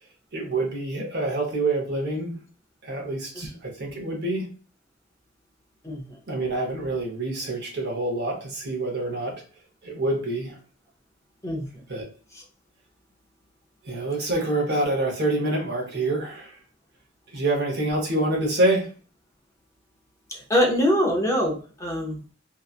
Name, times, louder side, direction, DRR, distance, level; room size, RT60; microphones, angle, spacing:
voice 1, 0.3-2.3 2.8-4.5 6.3-9.4 9.8-10.6 11.9-12.1 13.8-16.6 17.3-18.9, right 2 dB, 55° right, 0 dB, 0.9 m, -26 dB
voice 2, 5.8-6.2 11.4-11.8 20.3-22.3, equal, 15° left, 0 dB, 0.5 m, -24 dB
2.7 x 2.3 x 2.3 m, 0.38 s
head